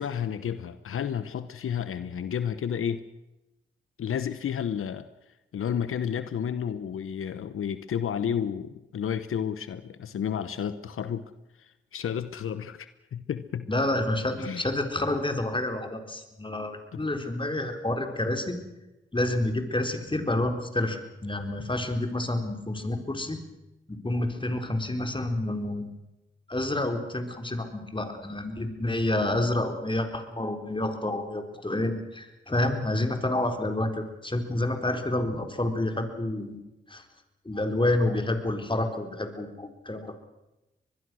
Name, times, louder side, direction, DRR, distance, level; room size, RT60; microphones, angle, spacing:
voice 1, 0.0-3.0 4.0-5.1 5.5-11.3 11.6-13.7 14.4-14.7 16.9-17.0, left 8 dB, 85° left, 12 dB, 0.9 m, -31 dB
voice 2, 13.7-18.6 19.1-23.4 23.9-25.9 26.5-37.0 37.5-40.2, left 1 dB, 25° left, 6 dB, 4.2 m, -29 dB
24.5 x 21.0 x 6.3 m, 0.96 s
cardioid pair, 50°, 21 cm